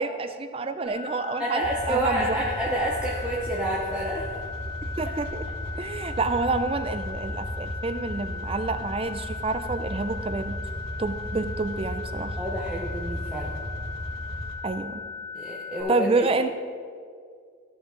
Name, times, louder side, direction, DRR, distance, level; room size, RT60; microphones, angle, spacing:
voice 1, 0.0-2.4 5.0-5.4 5.8-10.6 11.0-12.4 14.6-15.0 15.9-16.5, right 3 dB, 25° right, 9 dB, 0.4 m, -28 dB
sound 1, 0.9-15.8, left 4 dB, 60° left, 1.4 m, -38 dB
voice 2, 1.4-4.4 5.0-5.2 12.4-13.6 15.3-16.3, right 1 dB, 5° right, -6 dB, 0.8 m, -29 dB
sound 2, 1.6-14.6, equal, 65° right, 1.5 m, -36 dB
14.5 x 5.3 x 3.8 m, 2.1 s
head